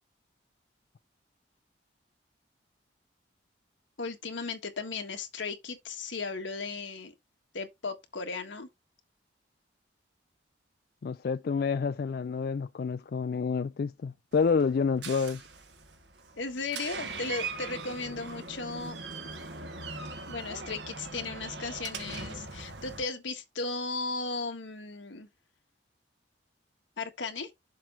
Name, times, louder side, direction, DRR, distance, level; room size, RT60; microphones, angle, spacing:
voice 1, 4.0-7.1 7.5-8.7 16.4-19.0 20.3-25.3 27.0-27.5, left 3 dB, 85° left, 1.6 m, -36 dB
voice 2, 11.0-15.5, left 5 dB, 55° left, 0.3 m, -28 dB
Door, 14.3-23.0, right 4 dB, 70° right, 1.5 m, -41 dB
7.3 x 3.2 x 6.2 m
head